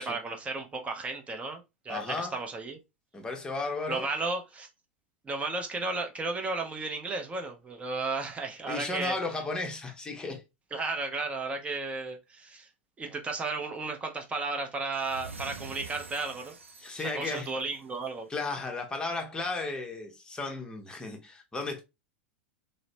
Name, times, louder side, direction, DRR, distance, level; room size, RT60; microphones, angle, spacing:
voice 1, 0.0-2.8 3.9-4.7 5.2-9.2 10.7-12.7 13.0-16.5 17.0-18.3, right 3 dB, 20° right, 0.7 m, -34 dB
voice 2, 1.9-2.3 3.1-4.1 8.6-10.4 16.8-17.5 18.3-21.8, left 3 dB, 10° left, 0.8 m, -34 dB
sound 1, 14.9-18.2, right 4 dB, 90° right, 0.4 m, -46 dB
3.0 x 2.0 x 2.7 m
hypercardioid pair, 95°, 7 cm